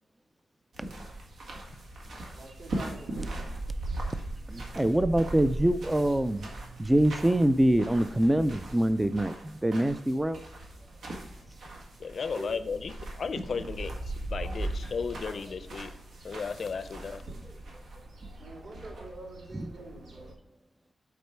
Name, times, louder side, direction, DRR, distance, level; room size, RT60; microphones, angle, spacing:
sound 1, 0.7-20.3, right 2 dB, 90° right, 1.7 m, -39 dB
voice 1, 2.3-3.5 12.3-12.5 18.4-20.3, right 2 dB, 55° right, -1 dB, 2.8 m, -45 dB
voice 2, 4.5-6.5 6.8-10.4 14.5-14.6 17.1-17.2 19.5-19.7, right 1 dB, 10° right, 12 dB, 0.3 m, -25 dB
voice 3, 12.0-14.0 14.3-15.9 16.2-17.2, left 5 dB, 55° left, 11 dB, 0.5 m, -34 dB
8.3 x 4.4 x 4.5 m, 0.79 s
wide cardioid pair, 160°, 0 cm